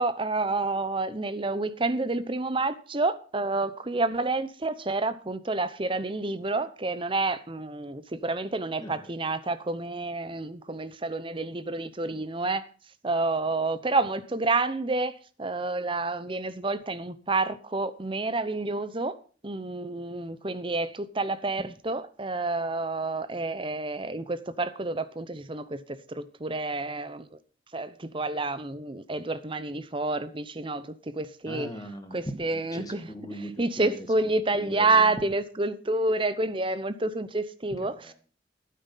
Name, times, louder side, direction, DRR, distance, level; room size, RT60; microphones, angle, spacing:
voice 1, 0.0-12.7 13.0-15.1 15.4-19.1 19.4-25.8 26.1-27.2 27.7-31.7 32.1-33.1 33.6-38.0, right 3 dB, 30° right, 0.8 m, -29 dB
voice 2, 31.5-32.3 32.7-34.1 34.5-35.1 37.8-38.1, equal, 20° left, 1.9 m, -39 dB
12.5 x 9.4 x 5.7 m
head